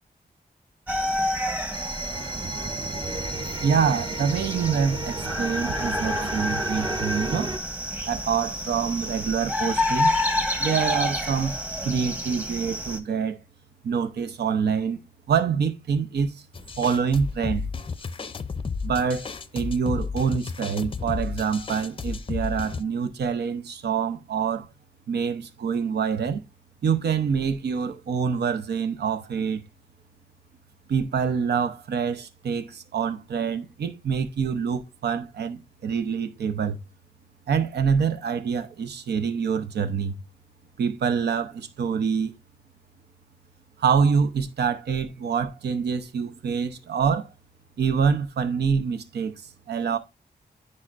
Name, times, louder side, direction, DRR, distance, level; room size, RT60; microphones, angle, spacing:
sound 1, 0.9-13.0, left 1 dB, 10° right, 1.0 m, -29 dB
sound 2, 1.7-7.6, right 2 dB, 30° right, 0.6 m, -34 dB
voice 1, 3.6-7.5 8.1-10.1 10.6-11.6 11.8-13.4 13.8-15.0 15.3-16.4 16.8-17.7 18.8-24.7 25.1-26.4 26.8-29.6 30.9-36.8 37.5-40.2 40.8-42.3 43.8-47.3 47.8-49.4 49.7-50.0, right 6 dB, 85° right, 0.7 m, -26 dB
sound 3, 16.5-22.8, left 5 dB, 30° left, 0.4 m, -32 dB
9.6 x 4.4 x 2.5 m
cardioid pair, 70°, 17 cm